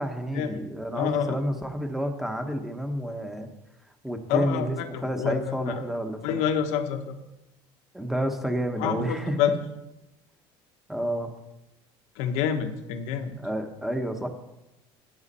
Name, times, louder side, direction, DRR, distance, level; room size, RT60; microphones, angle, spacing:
voice 1, 0.0-3.5 4.0-6.5 7.9-9.6 10.9-11.3 13.4-14.3, right 1 dB, 5° right, 6 dB, 1.1 m, -30 dB
voice 2, 0.9-1.4 4.3-5.8 6.2-7.2 8.8-9.5 12.2-13.3, left 8 dB, 80° left, 7 dB, 1.2 m, -28 dB
10.5 x 8.9 x 4.3 m, 0.93 s
cardioid pair, 130°, 11 cm